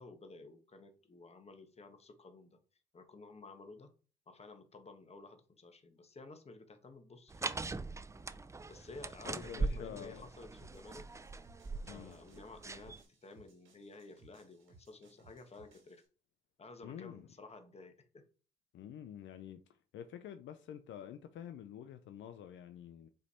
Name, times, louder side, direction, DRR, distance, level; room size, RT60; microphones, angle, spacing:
voice 1, 0.0-2.6 2.9-3.9 4.3-7.8 8.7-11.1 11.9-16.0 16.6-18.2, left 3 dB, 30° left, 1.3 m, -53 dB
sound 1, 7.3-13.0, right 3 dB, 15° right, 0.4 m, -41 dB
voice 2, 9.2-10.3 11.8-12.2 16.8-17.3 18.7-19.6 19.9-23.1, left 9 dB, 75° left, 0.6 m, -48 dB
sound 2, 10.6-16.0, right 3 dB, 90° right, 3.2 m, -65 dB
8.0 x 3.3 x 4.2 m
cardioid pair, 90°, 20 cm